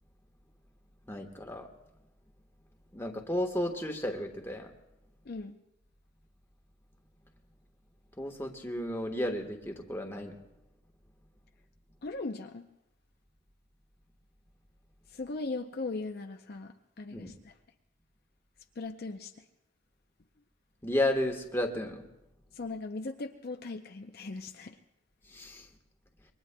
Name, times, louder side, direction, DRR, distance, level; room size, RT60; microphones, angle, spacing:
voice 1, 1.1-1.7 2.9-4.7 8.2-10.4 17.1-17.3 20.8-22.0 25.3-25.7, left 1 dB, 15° left, 3 dB, 1.3 m, -33 dB
voice 2, 5.2-5.6 12.0-12.7 15.1-17.6 18.8-19.4 22.5-24.8, left 3 dB, 55° left, 4 dB, 0.6 m, -39 dB
27.5 x 23.0 x 2.2 m, 0.91 s
head